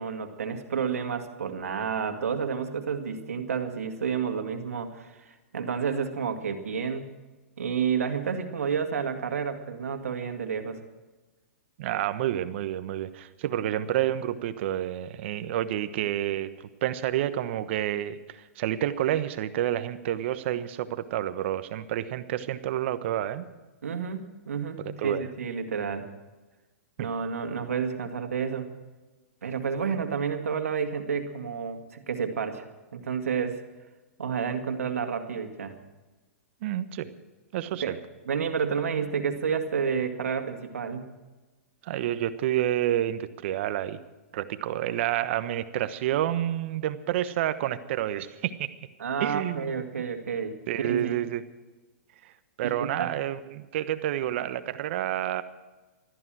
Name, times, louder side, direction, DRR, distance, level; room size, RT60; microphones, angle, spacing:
voice 1, 0.0-7.1 7.6-10.8 23.8-26.1 27.0-28.7 29.4-32.7 32.9-33.6 34.2-35.8 37.8-37.9 38.3-41.1 49.0-51.1 52.6-53.1, right 6 dB, 90° right, 6 dB, 2.1 m, -30 dB
voice 2, 11.8-16.5 16.8-18.2 18.6-23.5 24.8-25.2 27.0-27.1 36.6-37.1 37.5-38.0 41.8-44.0 44.3-48.7 49.2-49.7 49.9-50.0 50.7-51.4 52.6-55.4, right 12 dB, 55° right, 12 dB, 1.2 m, -29 dB
16.5 x 13.5 x 6.3 m, 1.2 s
hypercardioid pair, 135°, 8 cm